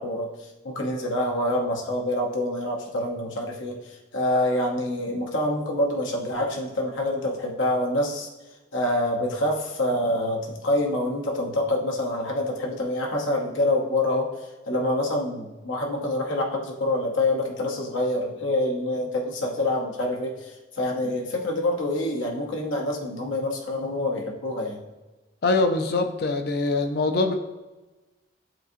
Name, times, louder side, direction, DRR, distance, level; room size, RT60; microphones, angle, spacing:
voice 1, 0.0-8.3 8.7-14.3 14.7-24.8, left 1 dB, 80° left, 0 dB, 0.9 m, -26 dB
voice 2, 25.4-27.3, left 3 dB, 55° left, 7 dB, 0.4 m, -23 dB
7.6 x 2.6 x 2.6 m, 1.1 s
head